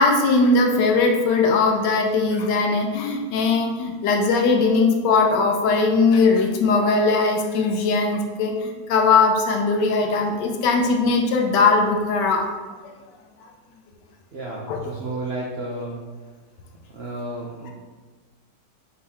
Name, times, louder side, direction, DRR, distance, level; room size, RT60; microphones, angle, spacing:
voice 1, 0.0-12.4 14.7-14.8, left 3 dB, 80° left, 2 dB, 1.2 m, -19 dB
voice 2, 14.3-16.0 16.9-17.7, right 2 dB, 85° right, -5 dB, 0.5 m, -32 dB
3.9 x 3.9 x 2.8 m, 1.4 s
omnidirectional pair, 1.8 m